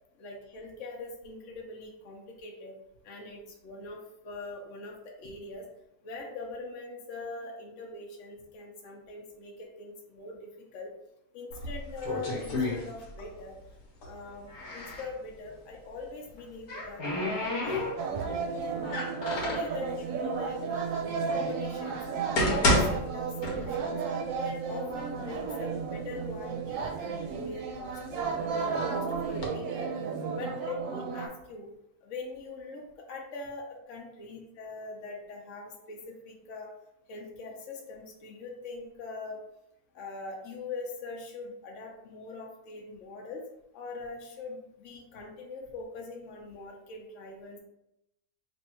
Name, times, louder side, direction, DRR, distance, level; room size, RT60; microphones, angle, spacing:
voice 1, 0.2-2.7 3.0-4.0 4.2-5.6 6.0-10.9 11.3-13.6 14.0-18.5 19.4-20.9 21.3-24.0 24.4-29.9 30.3-31.7 32.0-36.7 37.1-39.4 39.9-43.4 43.7-47.6, left 3 dB, 60° left, -1 dB, 1.0 m, -42 dB
sound 1, 11.5-13.4 13.7-15.1 16.2-18.3 18.8-19.8 20.5-20.6 21.3-21.4 22.0-24.0 24.3-24.4 25.1-25.2 25.6-26.3 26.8-28.5 29.1-29.5, left 1 dB, 80° left, 1.4 m, -30 dB
sound 2, 18.0-31.3, right 5 dB, 70° right, 0.9 m, -33 dB
3.3 x 2.7 x 4.3 m, 0.83 s
omnidirectional pair, 1.6 m